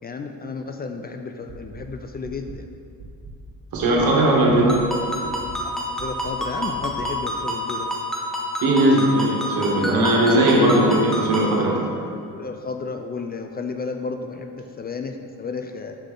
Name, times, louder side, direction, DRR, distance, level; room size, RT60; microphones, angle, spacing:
voice 1, 0.0-2.7 5.5-8.0 12.3-16.0, left 4 dB, 30° left, 6 dB, 0.4 m, -32 dB
sound 1, 1.5-1.8 2.2-2.6 3.0-3.3 3.7-4.1 4.5-4.8 5.2-5.6 6.0-6.3 6.7-7.0, right 5 dB, 55° right, 1.1 m, -40 dB
voice 2, 3.7-4.9 8.6-11.8, right 1 dB, 80° right, -2 dB, 1.5 m, -18 dB
Ringtone, 4.7-11.6, equal, ahead, 1.0 m, -28 dB
6.9 x 5.6 x 3.8 m, 2.5 s
cardioid pair, 105°, 36 cm